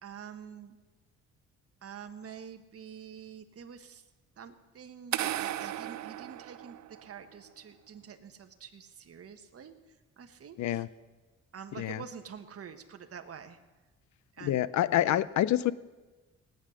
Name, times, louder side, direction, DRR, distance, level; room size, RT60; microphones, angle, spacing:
voice 1, 0.0-0.8 1.8-4.0 4.4-9.7 10.2-10.8 11.5-13.6 14.3-14.7 15.0-15.2, right 7 dB, 50° right, 7 dB, 1.5 m, -47 dB
sound 1, 5.1-7.2, right 13 dB, 65° right, 0.6 m, -35 dB
voice 2, 14.4-15.7, left 13 dB, 70° left, 18 dB, 0.6 m, -27 dB
18.0 x 9.7 x 6.5 m, 1.2 s
cardioid pair, 90°, 30 cm